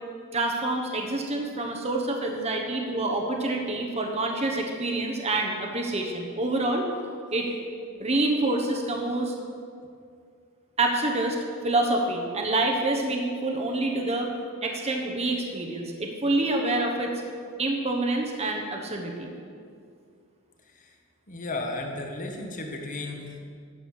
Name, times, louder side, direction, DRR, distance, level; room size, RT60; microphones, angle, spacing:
voice 1, 0.3-6.8 7.3-7.5 8.0-9.3 10.8-11.4 11.6-14.3 14.6-17.1 17.6-19.3, right 2 dB, 30° right, 1 dB, 1.1 m, -27 dB
voice 2, 21.3-23.4, left 2 dB, 35° left, 2 dB, 1.4 m, -34 dB
11.0 x 7.8 x 6.4 m, 2.3 s
head